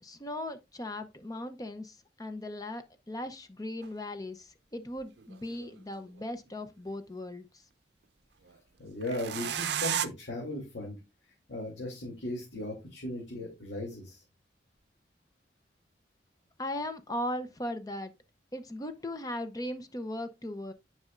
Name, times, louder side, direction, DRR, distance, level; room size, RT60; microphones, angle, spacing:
voice 1, 0.0-7.5 16.6-18.1 18.5-20.7, left 1 dB, 20° left, 0.7 m, -38 dB
sound 1, 3.8-3.9 5.2-6.2 9.0-10.1, right 9 dB, 70° right, 0.5 m, -33 dB
voice 2, 8.8-11.0 11.5-14.2, left 1 dB, 80° left, 2.7 m, -37 dB
10.5 x 5.4 x 2.5 m
head